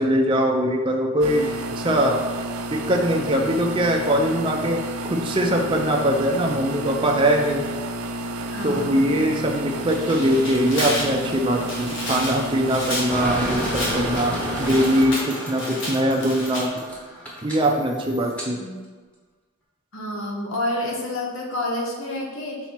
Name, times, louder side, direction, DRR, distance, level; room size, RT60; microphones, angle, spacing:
voice 1, 0.0-2.2 2.7-4.8 5.1-7.6 8.6-16.7 17.4-18.6, equal, 25° right, 1 dB, 0.5 m, -22 dB
sound 1, 1.2-15.1, right 1 dB, 85° right, 0.5 m, -31 dB
voice 2, 8.5-9.1 18.5-18.8 19.9-22.6, left 1 dB, 75° left, -1 dB, 1.2 m, -29 dB
Tearing, 9.7-16.6, left 1 dB, 60° left, 1.7 m, -31 dB
sound 2, 13.1-18.5, equal, 5° left, 1.0 m, -31 dB
5.7 x 4.1 x 4.5 m, 1.4 s
head